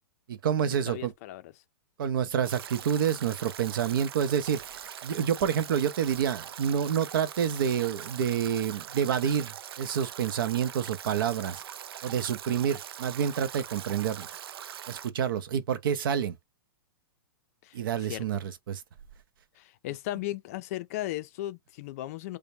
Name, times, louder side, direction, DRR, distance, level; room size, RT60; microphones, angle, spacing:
voice 1, 0.3-1.1 2.0-11.6 12.0-14.3 14.9-16.4 17.7-18.8, right 8 dB, 65° right, 0.8 m, -28 dB
voice 2, 0.9-1.5 17.6-18.2 19.5-22.4, left 15 dB, 40° left, 0.4 m, -36 dB
Stream / Drip / Trickle dribble, 2.4-15.1, right 10 dB, 85° right, 0.4 m, -42 dB
5.0 x 2.2 x 2.8 m
hypercardioid pair, 160°, 12 cm